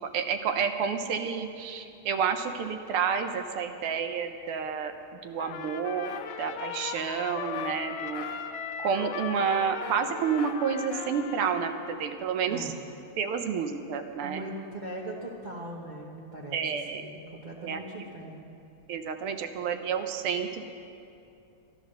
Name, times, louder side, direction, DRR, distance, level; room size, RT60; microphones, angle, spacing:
voice 1, 0.1-4.9 5.2-8.3 8.8-12.7 13.2-14.4 16.5-17.0 17.6-18.1 18.9-20.6, right 6 dB, 85° right, 7 dB, 1.7 m, -30 dB
Trumpet, 5.4-12.1, left 8 dB, 70° left, 1.0 m, -38 dB
sound 1, 6.0-6.3 7.5-7.7 8.1-8.4 9.8-10.0 10.4-10.6 10.9-11.1, left 5 dB, 85° left, 0.4 m, -43 dB
voice 2, 12.5-12.8 14.2-16.6 16.9-18.4, right 1 dB, 30° right, -3 dB, 0.9 m, -40 dB
11.5 x 11.5 x 6.6 m, 2.7 s
omnidirectional pair, 2.4 m